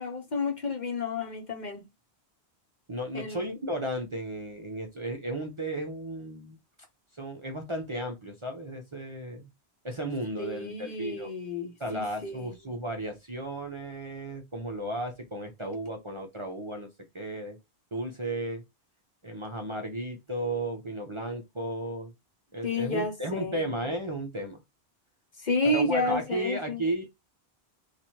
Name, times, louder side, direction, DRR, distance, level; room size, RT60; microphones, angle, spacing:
voice 1, 0.0-1.9 3.1-3.4 10.4-12.5 22.6-23.6 25.4-26.8, left 2 dB, 45° left, 0.8 m, -31 dB
voice 2, 2.9-6.6 7.1-9.5 9.8-11.3 11.8-16.9 17.1-17.6 17.9-18.6 19.2-22.1 22.5-24.6 25.6-27.1, right 1 dB, 35° right, 0.6 m, -34 dB
3.0 x 2.5 x 4.2 m
omnidirectional pair, 1.1 m